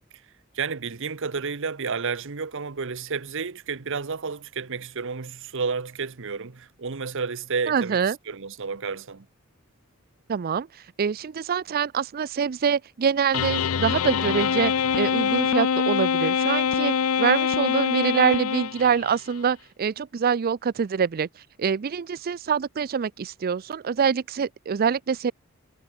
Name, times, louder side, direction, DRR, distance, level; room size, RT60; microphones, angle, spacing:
voice 1, 0.1-9.2, right 5 dB, 65° right, 1.0 m, -31 dB
voice 2, 7.7-8.2 10.3-10.7 11.0-21.3 21.6-25.3, right 6 dB, 45° right, 0.4 m, -25 dB
sound 1, 13.3-19.1, left 7 dB, 85° left, 0.6 m, -24 dB
head